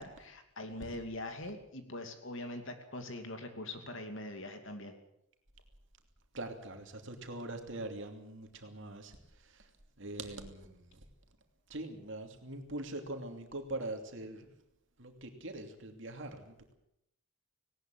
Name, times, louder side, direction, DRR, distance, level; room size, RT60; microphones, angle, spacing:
voice 1, 0.0-4.9, left 1 dB, 55° left, 6 dB, 2.7 m, -43 dB
voice 2, 6.3-9.7 10.0-11.0 11.7-14.5 15.0-16.7, right 2 dB, 55° right, 4 dB, 2.8 m, -43 dB
19.0 x 18.5 x 7.8 m, 0.78 s
head